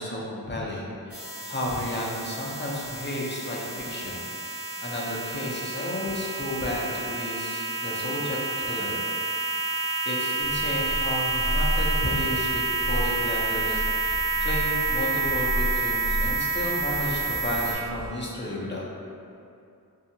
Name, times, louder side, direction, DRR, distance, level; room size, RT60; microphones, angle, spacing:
voice 1, 0.0-9.0 10.0-18.9, left 1 dB, 30° left, -4 dB, 0.5 m, -32 dB
Alien's bad day, 1.1-17.8, right 3 dB, 40° right, 0.6 m, -29 dB
sound 1, 10.4-18.1, equal, 75° right, 1.0 m, -32 dB
2.6 x 2.4 x 2.7 m, 2.5 s
wide cardioid pair, 55°, 36 cm